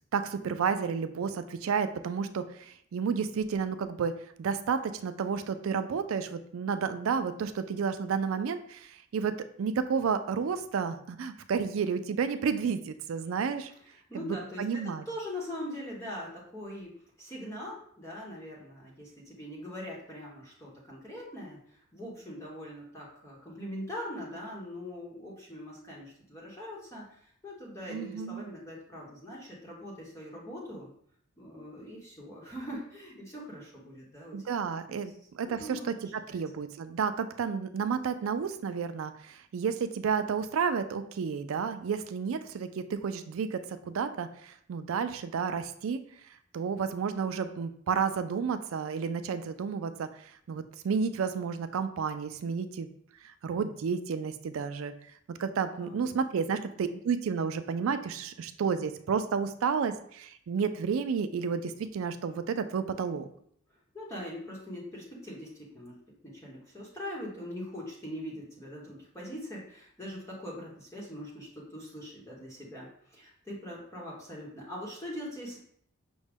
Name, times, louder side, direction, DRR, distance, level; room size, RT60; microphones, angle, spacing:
voice 1, 0.1-13.7 14.6-15.0 27.9-28.5 34.3-35.8 36.3-46.0 46.5-52.9 53.2-54.9 55.3-63.3, right 6 dB, 70° right, 10 dB, 0.3 m, -31 dB
voice 2, 14.1-30.9 31.4-35.0 35.4-35.8 36.3-36.4 55.8-56.2 63.9-66.0 66.2-75.6, equal, 15° left, -5 dB, 0.9 m, -42 dB
6.1 x 2.1 x 3.4 m, 0.64 s
head